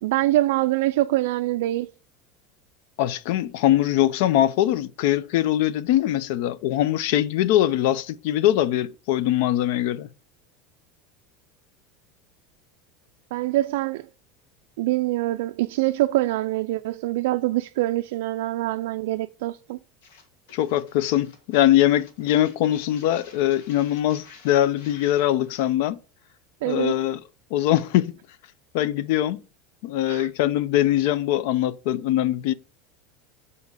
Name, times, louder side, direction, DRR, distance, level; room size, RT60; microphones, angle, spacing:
voice 1, 0.0-1.9 13.3-14.1 14.8-19.8 26.6-26.9 30.1-30.3, right 16 dB, 75° right, 0.3 m, -24 dB
voice 2, 3.0-10.1 20.5-26.0 26.7-27.2 27.5-28.1 28.7-29.4 29.8-32.5, left 13 dB, 60° left, 0.5 m, -22 dB
sound 1, 20.0-25.6, left 5 dB, 80° left, 1.7 m, -51 dB
7.3 x 4.1 x 6.3 m
supercardioid pair, 170°, 0 cm